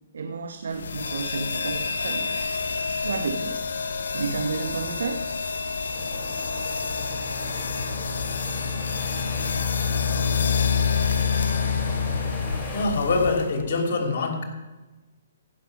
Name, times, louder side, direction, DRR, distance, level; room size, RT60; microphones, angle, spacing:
voice 1, 0.1-2.7 3.0-3.6 4.1-5.3, right 4 dB, 75° right, 7 dB, 0.9 m, -31 dB
sound 1, 0.8-13.6, left 6 dB, 75° left, 1.0 m, -27 dB
sound 2, 3.3-13.3, right 5 dB, 35° left, 5.1 m, -52 dB
sound 3, 5.9-12.9, equal, 15° left, 3.8 m, -38 dB
voice 2, 12.7-14.4, left 3 dB, 55° left, 2 dB, 2.9 m, -24 dB
15.0 x 6.6 x 6.0 m, 1.1 s
hypercardioid pair, 135°, 0 cm